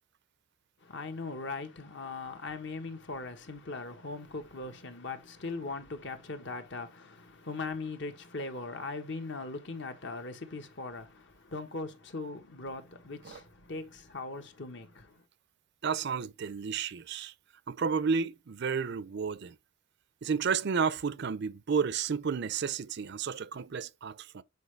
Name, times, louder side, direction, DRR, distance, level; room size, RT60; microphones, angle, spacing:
voice 1, 0.8-15.2, left 3 dB, 60° left, 1.3 m, -40 dB
voice 2, 15.8-17.3 17.7-19.6 20.2-24.4, right 6 dB, 60° right, 0.5 m, -31 dB
8.3 x 4.7 x 3.3 m
head